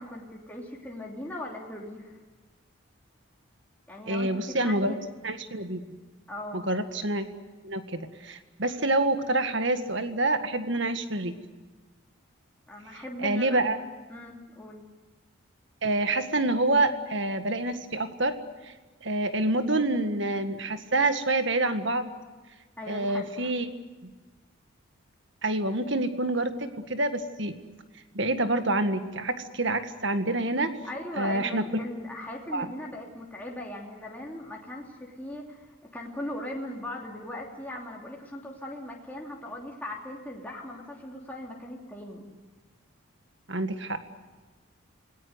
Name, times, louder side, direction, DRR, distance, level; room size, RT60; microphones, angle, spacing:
voice 1, 0.0-2.2 3.9-4.3 4.6-5.0 6.3-6.7 12.7-13.6 14.1-14.9 22.8-23.5 30.8-42.2, left 1 dB, 10° left, -2 dB, 3.0 m, -39 dB
voice 2, 4.1-4.9 5.2-5.8 6.5-7.3 7.6-11.4 12.9-13.8 15.8-18.3 18.6-18.7 19.0-22.1 22.9-23.7 24.0-24.1 25.4-27.6 28.1-30.7 31.2-31.8 32.5-32.7 43.5-44.0, right 2 dB, 55° right, 9 dB, 1.9 m, -27 dB
28.0 x 19.5 x 8.1 m, 1.3 s
head